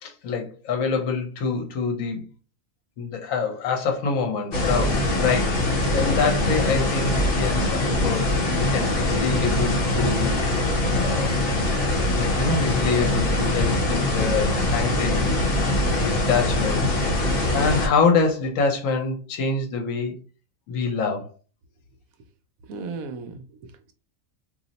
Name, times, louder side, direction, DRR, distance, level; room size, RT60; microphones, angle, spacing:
voice 1, 0.0-2.3 3.0-11.4 12.0-15.4 16.1-20.1 20.7-21.3, left 5 dB, 75° left, 1.1 m, -26 dB
sound 1, 4.5-17.9, left 1 dB, 50° left, 0.9 m, -23 dB
voice 2, 22.7-23.9, right 4 dB, 80° right, 1.0 m, -36 dB
2.7 x 2.0 x 3.9 m
omnidirectional pair, 1.5 m